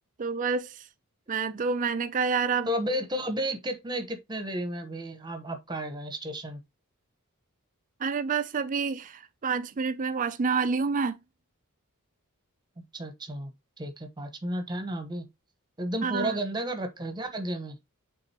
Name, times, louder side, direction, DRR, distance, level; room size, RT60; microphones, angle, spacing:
voice 1, 0.2-0.9 1.3-2.7 8.0-11.2 16.0-16.4, right 5 dB, 35° right, 0.4 m, -28 dB
voice 2, 2.7-6.6 12.8-13.5 13.8-15.3 15.8-17.8, right 1 dB, 20° right, 1.0 m, -32 dB
8.6 x 3.8 x 2.9 m
head